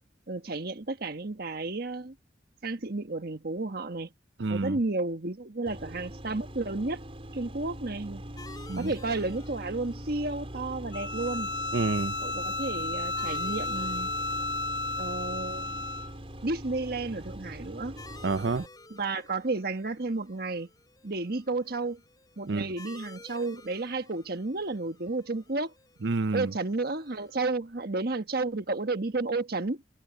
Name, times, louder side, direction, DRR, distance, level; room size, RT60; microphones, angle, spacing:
voice 1, 0.3-2.1 2.6-4.1 4.5-7.0 7.3-8.2 8.8-11.5 12.2-14.1 15.0-15.8 16.4-17.9 18.9-20.7 21.0-22.0 22.4-25.7 26.3-29.8, right 3 dB, 55° right, 1.5 m, -32 dB
voice 2, 4.4-4.8 8.7-8.9 11.7-12.2 18.2-18.7 22.5-22.7 26.0-26.5, right 3 dB, 75° right, 0.7 m, -28 dB
sound 1, 5.7-18.7, equal, 35° right, 5.3 m, -42 dB
sound 2, 8.4-27.5, left 3 dB, 20° left, 4.4 m, -53 dB
Bowed string instrument, 10.9-16.1, left 3 dB, 80° left, 2.5 m, -33 dB
head